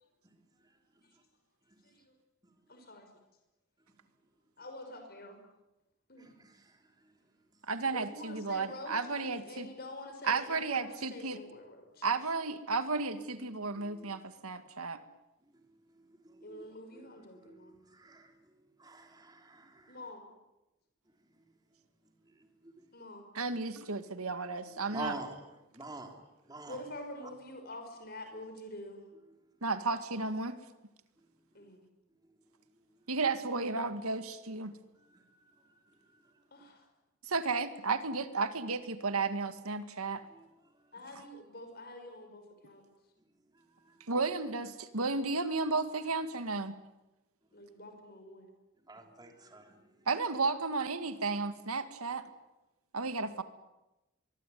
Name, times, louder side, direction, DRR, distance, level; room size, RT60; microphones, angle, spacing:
voice 1, 2.7-3.1 4.6-5.4 6.1-6.3 7.9-12.1 16.4-17.8 19.9-20.3 22.9-23.3 26.7-29.0 31.5-31.9 36.5-36.9 40.9-42.8 47.5-48.5, left 1 dB, 45° left, 5 dB, 5.6 m, -47 dB
voice 2, 6.2-7.1 13.8-14.2 15.5-16.7 16.9-18.4 18.8-20.0 22.0-22.8 24.7-25.4 25.7-26.2 26.4-26.8 35.0-36.4 40.2-40.5 43.5-44.1 48.9-50.1, right 2 dB, 20° right, 4 dB, 3.3 m, -49 dB
voice 3, 7.7-9.7 10.2-11.4 12.0-15.0 23.3-25.2 29.6-30.6 33.1-34.7 37.3-40.2 44.1-46.7 50.1-52.2 52.9-53.4, right 4 dB, 90° right, 10 dB, 2.1 m, -33 dB
24.0 x 23.0 x 9.4 m, 0.98 s
head